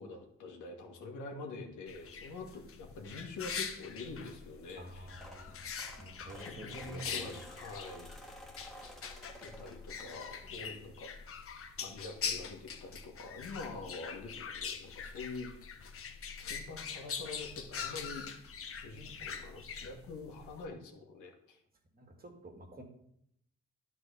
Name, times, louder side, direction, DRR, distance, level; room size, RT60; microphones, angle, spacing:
voice 1, 0.0-5.1 6.4-8.1 9.4-11.1 11.8-15.6 16.4-18.2 18.7-21.6, left 3 dB, 80° left, 3 dB, 1.8 m, -45 dB
sound 1, 1.9-20.6, left 6 dB, 45° left, 1.0 m, -43 dB
voice 2, 4.8-5.7 6.0-7.5 19.8-19.9 21.9-22.8, right 1 dB, 30° right, 3 dB, 2.0 m, -50 dB
sound 2, 4.9-10.5 11.0-11.2 12.5-12.6 12.8-12.9 13.2-13.4, equal, ahead, 1.7 m, -53 dB
9.9 x 4.2 x 6.7 m, 0.74 s
cardioid pair, 90°, 30 cm